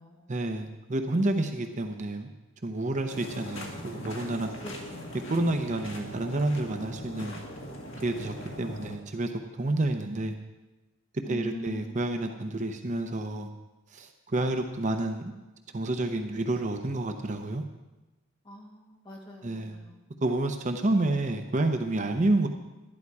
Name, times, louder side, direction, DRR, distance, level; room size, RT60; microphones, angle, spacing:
voice 1, 0.3-2.3 2.6-4.5 5.3-7.3 8.0-10.3 11.3-13.5 13.9-15.3 15.7-17.6 19.4-19.8 20.2-22.5, right 2 dB, 35° right, 6 dB, 0.7 m, -29 dB
sound 1, 3.1-9.0, equal, 65° left, 2.0 m, -41 dB
voice 2, 4.6-5.1 11.2-11.9 18.4-20.0, equal, 25° left, -2 dB, 2.2 m, -43 dB
12.0 x 11.0 x 4.8 m, 1.1 s
head